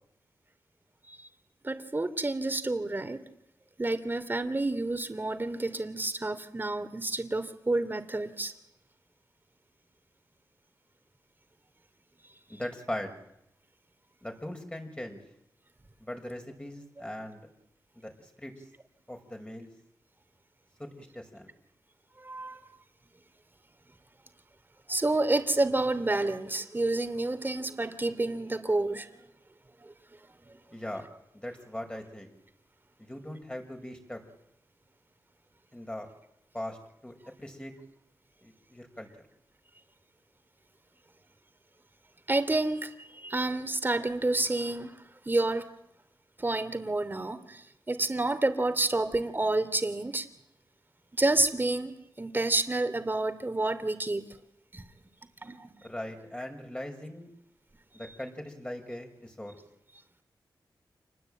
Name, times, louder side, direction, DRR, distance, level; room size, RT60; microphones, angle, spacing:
voice 1, 1.6-3.2 3.8-8.5 22.2-22.6 24.9-29.1 42.3-42.9 43.2-44.9 45.3-45.6 46.4-47.6 47.9-50.3 51.2-54.2 54.7-54.8 55.4-55.7, right 2 dB, 25° right, 10 dB, 3.0 m, -29 dB
voice 2, 12.5-13.2 14.2-15.2 16.0-17.5 17.9-18.5 19.1-19.7 20.8-21.5 30.7-31.0 31.3-32.3 33.0-34.2 35.7-36.1 36.5-36.8 37.0-37.7 38.4-39.1 55.8-57.3 57.9-59.6, left 1 dB, 15° left, 3 dB, 6.1 m, -40 dB
28.0 x 20.5 x 9.1 m, 0.82 s
wide cardioid pair, 75°, 8 cm